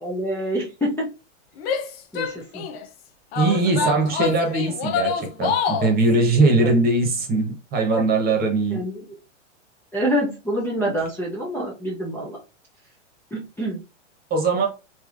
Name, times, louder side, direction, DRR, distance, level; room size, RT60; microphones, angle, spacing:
voice 1, 0.0-1.1 2.1-2.6 3.5-4.3 6.6-6.7 7.9-8.1 8.7-9.0 9.9-12.4 13.3-13.8, equal, 5° left, 0.6 m, -27 dB
Female speech woman speaking / Yell, 1.6-2.8 3.3-6.0, left 6 dB, 55° left, 0.7 m, -26 dB
voice 2, 3.3-8.8 14.3-14.7, right 3 dB, 25° right, 1.1 m, -20 dB
3.3 x 3.0 x 2.5 m
hypercardioid pair, 125°, 36 cm